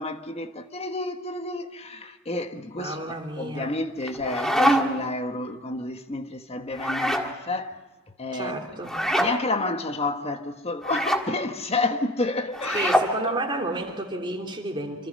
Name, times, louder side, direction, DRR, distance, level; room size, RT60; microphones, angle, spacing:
voice 1, 0.0-7.8 8.2-8.9 9.2-12.9 13.2-13.3, left 2 dB, 30° left, 1.5 m, -30 dB
voice 2, 2.8-3.7 8.3-8.9 12.7-15.1, right 2 dB, 25° right, 3.3 m, -31 dB
sound 1, 4.0-5.1 6.7-7.3 8.8-9.3 10.8-11.3 12.5-13.1, equal, ahead, 1.8 m, -24 dB
26.5 x 26.5 x 5.5 m
head